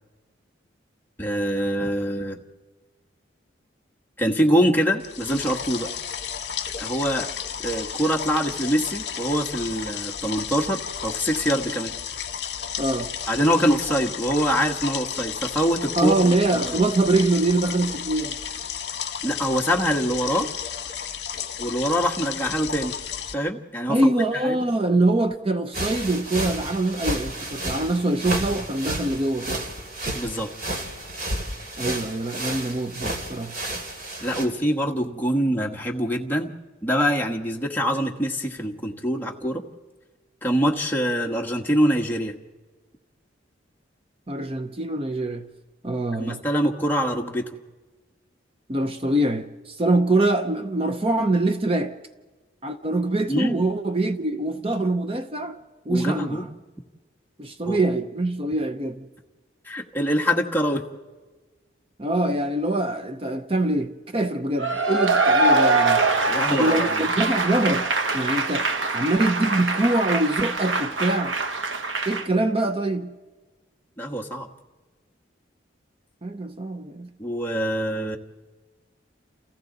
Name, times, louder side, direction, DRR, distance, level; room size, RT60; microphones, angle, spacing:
voice 1, 1.2-2.4 4.2-5.9 6.8-7.3 7.6-11.9 13.3-16.3 16.6-16.7 19.2-20.5 21.6-22.9 23.3-24.1 24.4-24.6 30.1-30.5 34.2-36.5 36.8-39.6 40.4-42.3 46.2-47.4 53.3-53.6 55.9-56.4 57.6-57.8 59.6-60.8 66.3-67.0 74.0-74.5 77.2-78.2, equal, 10° left, 1.4 m, -24 dB
sound 1, 5.0-23.3, left 8 dB, 55° left, 1.4 m, -33 dB
voice 2, 12.8-13.1 16.0-18.4 23.9-29.7 31.8-33.6 44.3-45.5 45.8-46.4 48.7-52.0 52.6-55.6 55.9-56.5 57.4-59.0 62.0-66.1 66.5-71.4 72.1-73.2 76.2-77.1, right 2 dB, 30° right, 0.7 m, -24 dB
sound 2, 25.7-34.5, right 1 dB, 50° right, 2.9 m, -31 dB
Cheering / Applause / Crowd, 64.6-72.3, right 3 dB, 85° right, 1.3 m, -23 dB
29.5 x 29.0 x 4.0 m
head